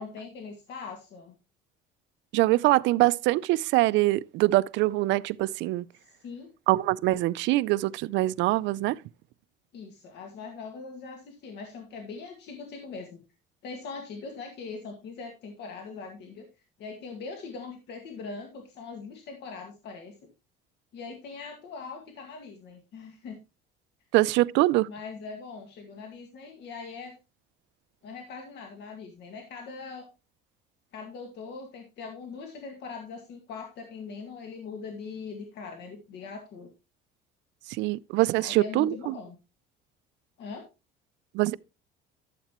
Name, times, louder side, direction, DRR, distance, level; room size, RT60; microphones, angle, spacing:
voice 1, 0.0-1.3 6.0-6.5 9.7-13.2 13.6-16.5 16.8-20.3 20.9-23.4 24.8-27.2 28.0-30.1 30.9-36.7 38.4-39.4 40.4-40.6, left 4 dB, 60° left, 2.0 m, -41 dB
voice 2, 2.3-5.9 6.7-9.0 24.1-24.9 37.7-39.1 41.3-41.6, right 18 dB, 75° right, 0.4 m, -24 dB
12.0 x 7.5 x 3.0 m
cardioid pair, 135°, 19 cm